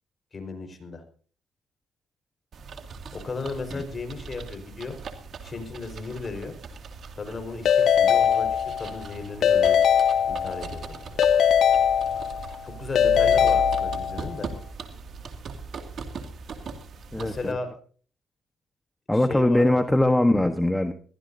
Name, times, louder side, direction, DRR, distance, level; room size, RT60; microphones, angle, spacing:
voice 1, 0.3-1.0 3.1-5.0 5.4-6.6 7.1-8.5 8.8-9.8 10.3-11.2 12.6-14.5 17.1-17.7 19.1-19.8, left 3 dB, 35° left, 6 dB, 4.9 m, -35 dB
sound 1, 2.5-17.5, right 5 dB, 60° right, 2.4 m, -39 dB
Keyboard (musical) / Ringtone, 7.7-9.0 9.4-10.7 11.2-12.5 13.0-14.3, left 8 dB, 65° left, 0.9 m, -21 dB
voice 2, 17.1-17.6 19.1-20.9, left 1 dB, 10° left, 7 dB, 1.3 m, -21 dB
22.5 x 15.5 x 2.8 m, 0.43 s
cardioid pair, 90°, 0 cm